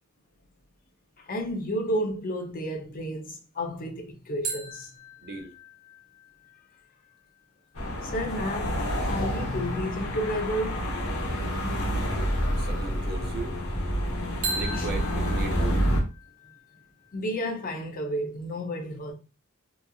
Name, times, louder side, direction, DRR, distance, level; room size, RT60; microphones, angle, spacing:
voice 1, 1.2-4.9 8.0-10.8 14.7-14.9 17.1-19.1, equal, 40° left, 0.6 m, -31 dB
sound 1, 4.4-8.0 14.4-17.2, right 2 dB, 65° right, 1.0 m, -39 dB
voice 2, 5.2-5.5 12.1-12.3 12.6-13.6 14.5-15.8, right 3 dB, 45° right, 0.6 m, -37 dB
sound 2, 7.7-16.0, equal, 80° left, 1.1 m, -28 dB
2.9 x 2.4 x 2.3 m
head